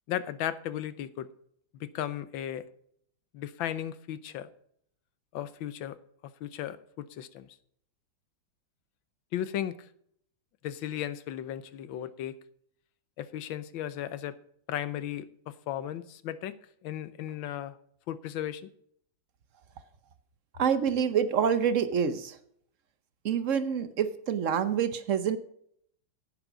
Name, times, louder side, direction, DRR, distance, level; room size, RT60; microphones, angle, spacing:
voice 1, 0.1-1.3 1.8-2.7 3.3-4.5 5.3-6.0 6.4-7.5 9.3-9.9 10.6-12.4 13.2-14.4 14.7-16.6 16.8-17.8 18.1-18.7, left 11 dB, 80° left, 1.5 m, -35 dB
voice 2, 20.6-22.4 23.2-25.4, right 7 dB, 60° right, 0.8 m, -27 dB
11.0 x 9.3 x 5.0 m
omnidirectional pair, 2.2 m